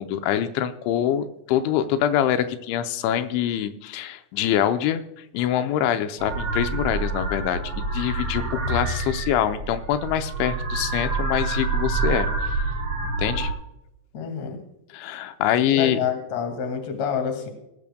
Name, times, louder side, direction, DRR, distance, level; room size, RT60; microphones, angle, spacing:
voice 1, 0.0-5.0 5.3-7.6 7.9-12.5 13.2-13.5 14.9-16.0, left 10 dB, 90° left, 8 dB, 3.0 m, -24 dB
sound 1, 6.2-13.5, right 3 dB, 40° right, 2.4 m, -27 dB
voice 2, 14.1-14.6 15.7-17.5, left 7 dB, 45° left, 5 dB, 2.6 m, -27 dB
19.5 x 12.0 x 2.2 m, 0.84 s
omnidirectional pair, 5.3 m